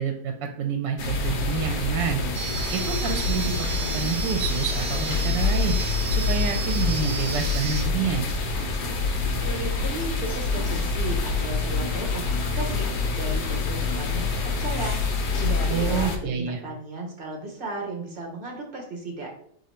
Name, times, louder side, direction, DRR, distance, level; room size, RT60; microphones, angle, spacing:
voice 1, 0.0-2.2 2.7-3.7 3.9-5.8 6.1-8.3 15.7-16.6, right 6 dB, 85° right, 4 dB, 1.2 m, -28 dB
sound 1, 1.0-16.2, left 3 dB, 70° left, 1.3 m, -26 dB
sound 2, 2.3-7.8, right 6 dB, 60° right, 0.8 m, -34 dB
voice 2, 9.4-15.0 15.4-19.3, right 2 dB, 35° right, 0 dB, 1.2 m, -35 dB
sound 3, 9.7-15.2, left 2 dB, 45° left, 0.9 m, -46 dB
3.8 x 3.2 x 4.3 m, 0.65 s
omnidirectional pair, 1.9 m